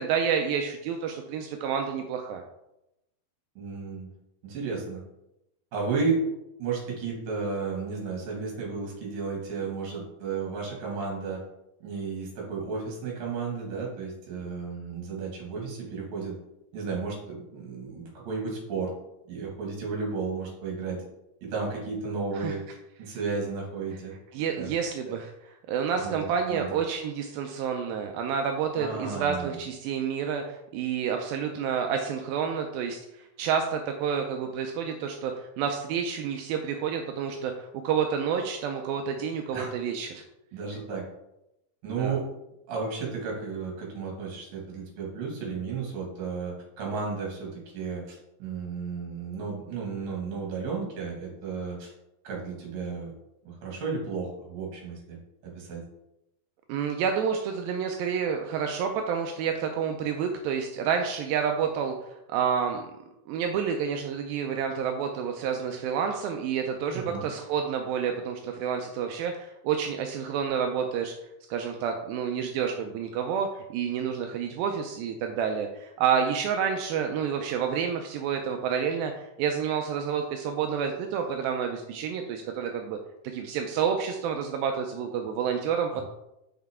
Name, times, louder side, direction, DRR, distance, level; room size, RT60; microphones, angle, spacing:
voice 1, 0.0-2.4 22.4-22.5 24.3-40.2 42.0-42.2 56.7-62.8 63.3-71.1 71.5-83.0 83.2-86.0, right 7 dB, 85° right, 4 dB, 2.1 m, -29 dB
voice 2, 3.5-4.1 4.4-5.0 5.7-6.2 6.6-11.4 11.8-16.3 16.7-18.9 19.3-21.0 21.4-22.6 23.0-24.1 24.6-24.7 25.0-25.2 26.0-26.7 28.8-29.6 39.5-39.7 40.5-41.0 41.8-42.2 42.7-51.9 52.2-53.1 53.4-55.2 55.4-55.8 66.9-67.3 85.9-86.0, right 4 dB, 60° right, -1 dB, 3.3 m, -33 dB
6.4 x 5.8 x 3.5 m, 0.88 s
omnidirectional pair, 4.7 m